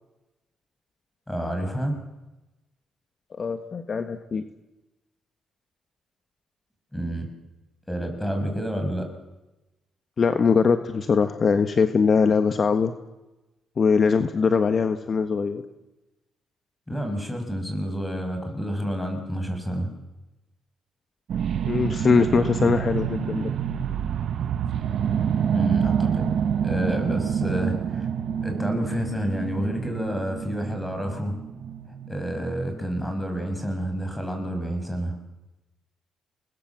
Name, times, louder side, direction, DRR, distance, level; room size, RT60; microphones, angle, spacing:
voice 1, 1.3-2.0 6.9-7.3 7.9-9.1 16.9-19.9 25.5-26.3 26.6-28.1 28.4-31.4 32.1-35.2, equal, 10° left, 5 dB, 6.6 m, -29 dB
voice 2, 3.4-4.4 10.2-12.9 13.8-15.6 21.6-23.5, left 5 dB, 45° left, 8 dB, 1.5 m, -21 dB
sound 1, 21.3-33.9 34.4-34.6, right 8 dB, 65° right, 1.1 m, -28 dB
29.0 x 20.5 x 7.5 m, 1.0 s
cardioid pair, 90°, 0 cm